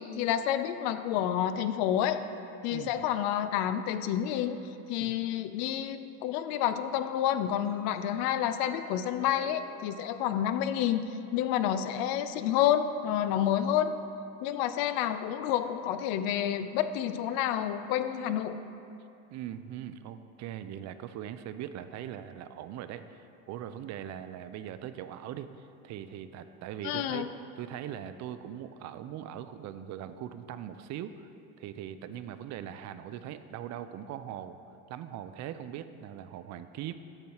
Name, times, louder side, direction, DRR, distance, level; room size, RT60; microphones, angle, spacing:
voice 1, 0.0-2.2 2.6-4.6 4.9-11.0 11.3-13.9 14.4-18.6 26.8-27.3, left 10 dB, 80° left, 11 dB, 0.5 m, -29 dB
sound 1, 7.4-10.8, right 2 dB, 80° right, 1.6 m, -52 dB
voice 2, 19.3-27.3 27.6-31.3 31.6-34.6 34.9-36.9, right 10 dB, 55° right, 11 dB, 0.4 m, -41 dB
8.7 x 6.3 x 2.9 m, 2.6 s
supercardioid pair, 95°, 33 cm